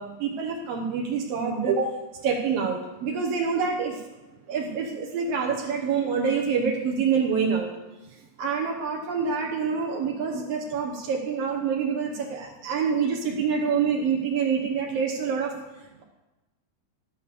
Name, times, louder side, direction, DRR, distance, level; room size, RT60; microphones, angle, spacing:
voice 1, 0.0-1.9 2.2-4.0 4.5-7.7 8.4-15.5, right 6 dB, 65° right, 0 dB, 1.6 m, -26 dB
12.5 x 8.2 x 6.9 m, 1.1 s
omnidirectional pair, 4.2 m